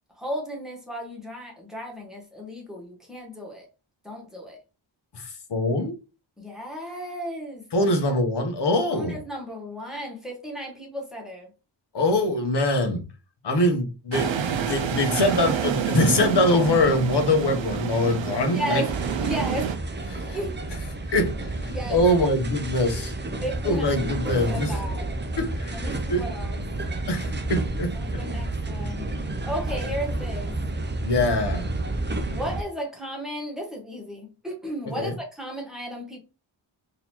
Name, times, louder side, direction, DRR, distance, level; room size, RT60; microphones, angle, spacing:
voice 1, 0.2-3.7 4.0-4.6 6.4-7.9 8.9-11.5 18.4-18.9 19.2-19.7 20.3-20.6 21.7-22.0 23.4-25.1 25.7-26.6 27.9-29.1 29.5-30.6 32.3-36.2, equal, ahead, 1.4 m, -34 dB
voice 2, 5.1-6.0 7.7-9.2 11.9-13.0 13.4-14.3 14.6-18.8 20.1-20.4 21.1-23.1 23.6-24.8 25.4-26.2 27.1-28.2 31.0-31.7 35.0-35.1, left 1 dB, 55° left, 0.9 m, -23 dB
sound 1, 14.1-19.8, right 7 dB, 70° right, 0.6 m, -28 dB
sound 2, 18.9-32.6, right 2 dB, 25° right, 0.5 m, -30 dB
3.9 x 2.8 x 2.9 m
wide cardioid pair, 120°, 48 cm